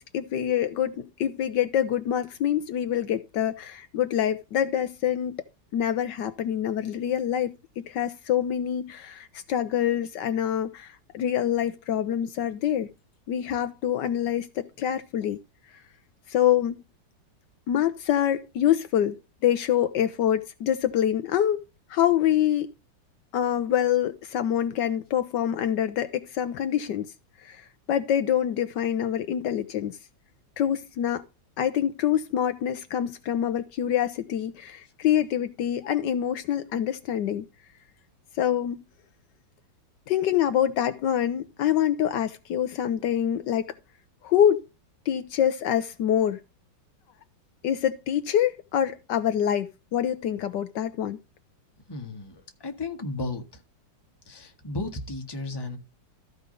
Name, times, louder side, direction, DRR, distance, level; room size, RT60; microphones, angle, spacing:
voice 1, 0.0-5.4 5.7-12.9 13.3-15.4 16.3-16.8 17.7-19.2 19.4-21.6 21.9-22.7 23.3-27.1 27.4-30.0 30.6-31.2 31.6-37.4 38.4-38.8 40.1-43.7 44.2-44.6 45.1-46.4 47.6-51.2, left 10 dB, 75° left, 1.3 m, -25 dB
voice 2, 51.9-53.6 54.3-55.8, left 2 dB, 15° left, 1.3 m, -34 dB
14.0 x 5.0 x 5.1 m
omnidirectional pair, 2.0 m